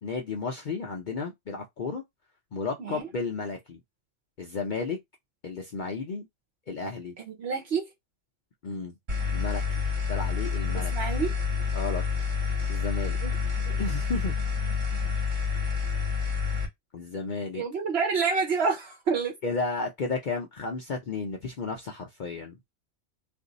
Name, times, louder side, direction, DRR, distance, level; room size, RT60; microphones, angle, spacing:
voice 1, 0.0-2.0 2.5-3.8 4.4-5.0 5.4-6.3 6.7-7.2 8.6-8.9 9.3-10.9 11.7-12.0 12.7-13.2 13.8-14.3 16.9-17.6 19.4-22.6, left 4 dB, 50° left, 0.6 m, -33 dB
voice 2, 7.2-7.9 10.7-11.3 13.2-13.3 13.7-13.9 17.5-19.3, right 5 dB, 60° right, 1.0 m, -28 dB
sound 1, 9.1-16.7, left 5 dB, 45° right, 1.2 m, -28 dB
2.6 x 2.4 x 3.8 m
omnidirectional pair, 1.2 m